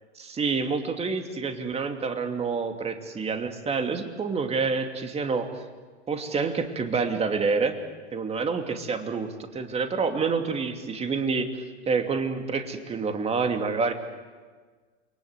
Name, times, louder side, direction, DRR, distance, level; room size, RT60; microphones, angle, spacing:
voice 1, 0.2-5.6 6.1-7.8 8.1-13.9, right 4 dB, 20° right, 6 dB, 2.8 m, -28 dB
28.5 x 23.0 x 8.3 m, 1.5 s
hypercardioid pair, 115°, 33 cm